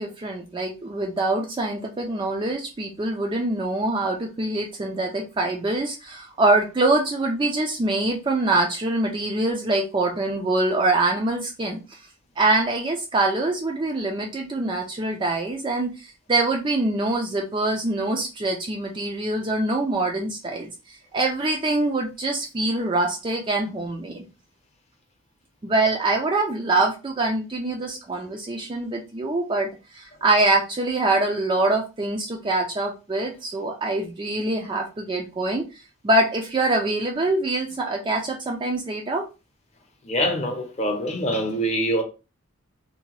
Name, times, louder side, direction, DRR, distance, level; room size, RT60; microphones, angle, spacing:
voice 1, 0.0-11.8 12.4-20.7 21.1-24.2 25.6-29.7 29.9-35.6 36.0-39.2, right 2 dB, 20° right, 0.3 m, -24 dB
voice 2, 40.0-42.0, equal, 30° left, 0.6 m, -24 dB
2.7 x 2.1 x 3.0 m
head